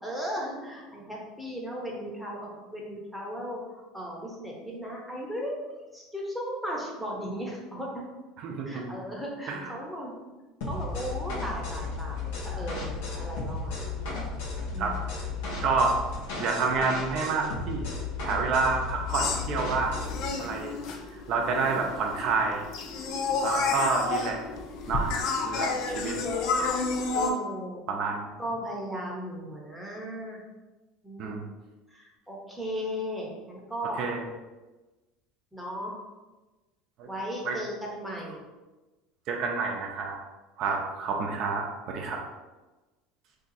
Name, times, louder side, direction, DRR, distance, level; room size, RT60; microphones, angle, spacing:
voice 1, 0.0-3.6 3.9-5.6 5.9-7.9 8.7-10.1 10.7-14.2 14.7-15.0 27.1-27.8 28.4-30.4 31.0-31.3 31.9-34.0 35.5-35.9 37.1-38.4 40.6-40.8, equal, 5° left, -3 dB, 0.8 m, -36 dB
voice 2, 8.4-8.9 9.5-9.8 14.0-14.1 14.8-14.9 15.6-16.0 16.4-17.9 18.2-19.9 20.4-20.8 21.3-22.7 23.4-24.4 24.9-25.1 25.4-26.2 27.9-28.3 31.2-31.4 33.9-34.2 37.0-37.1 37.4-37.6 39.3-40.2 40.6-42.2, right 4 dB, 55° right, 1 dB, 0.5 m, -28 dB
sound 1, 10.6-20.3, left 3 dB, 85° left, 0.9 m, -34 dB
sound 2, 19.1-27.3, left 4 dB, 60° left, 0.4 m, -31 dB
2.7 x 2.4 x 3.9 m, 1.2 s
supercardioid pair, 120°, 0 cm